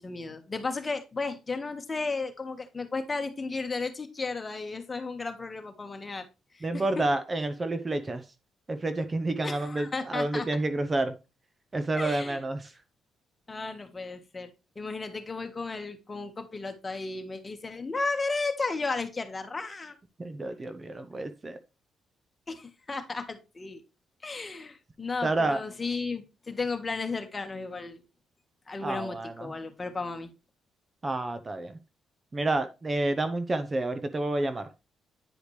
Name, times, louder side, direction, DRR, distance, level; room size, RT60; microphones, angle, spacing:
voice 1, 0.0-6.3 6.5-6.8 9.4-10.5 12.0-12.4 13.5-20.0 22.5-23.8 24.2-28.0 28.7-30.3, left 3 dB, 25° left, 1.5 m, -34 dB
voice 2, 6.6-8.2 8.7-11.1 11.7-12.7 20.2-21.6 25.2-25.6 28.8-29.5 31.0-31.8 32.3-34.7, right 2 dB, 25° right, 0.8 m, -29 dB
9.9 x 4.9 x 3.2 m
cardioid pair, 90°, 0 cm